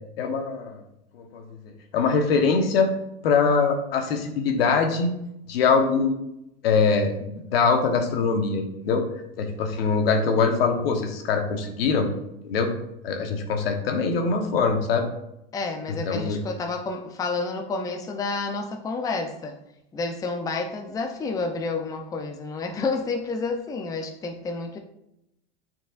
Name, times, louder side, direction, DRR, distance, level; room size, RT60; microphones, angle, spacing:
voice 1, 0.2-0.8 1.1-2.9 3.2-5.1 5.5-6.2 6.6-7.1 7.5-9.0 9.4-12.1 12.4-12.7 13.0-15.1 16.1-16.4, left 5 dB, 75° left, 4 dB, 1.2 m, -23 dB
voice 2, 15.5-19.6 19.9-24.8, left 3 dB, 10° left, 3 dB, 0.5 m, -30 dB
9.0 x 4.5 x 2.5 m, 0.84 s
hypercardioid pair, 110°, 30 cm